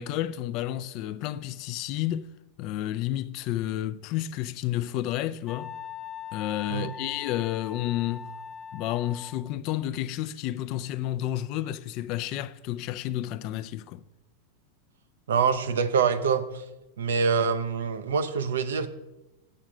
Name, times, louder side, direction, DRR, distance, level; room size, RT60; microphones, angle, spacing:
voice 1, 0.0-2.3 2.6-5.8 6.3-8.3 8.7-14.0, left 13 dB, 50° left, 0.4 m, -31 dB
Wind instrument woodwind instrument, 5.5-9.6, left 7 dB, 5° left, 0.7 m, -41 dB
voice 2, 15.3-16.5 17.0-18.9, right 6 dB, 85° right, 0.6 m, -25 dB
7.5 x 6.5 x 4.8 m
hypercardioid pair, 115°, 0 cm